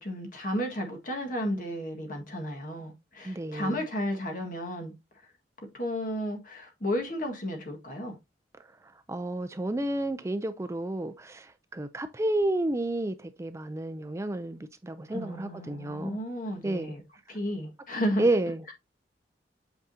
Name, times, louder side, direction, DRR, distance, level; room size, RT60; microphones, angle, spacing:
voice 1, 0.0-4.9 5.7-8.2 15.1-17.0 17.3-18.3, equal, 50° left, 1.6 m, -33 dB
voice 2, 3.2-3.8 9.1-16.2 16.6-17.0 18.2-18.6, right 1 dB, 15° right, 0.4 m, -30 dB
8.2 x 4.9 x 2.7 m
head